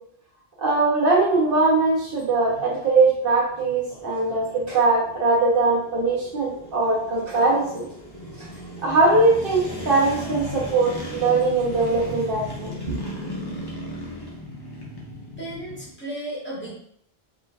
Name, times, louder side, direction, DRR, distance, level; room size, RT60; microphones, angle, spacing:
voice 1, 0.6-7.8 8.8-12.9, right 3 dB, 60° right, -4 dB, 1.3 m, -21 dB
sound 1, 0.8-15.9, left 1 dB, 25° left, 0.7 m, -37 dB
voice 2, 15.4-16.7, right 1 dB, 10° left, -8 dB, 1.3 m, -34 dB
3.6 x 2.9 x 2.3 m, 0.69 s
omnidirectional pair, 1.1 m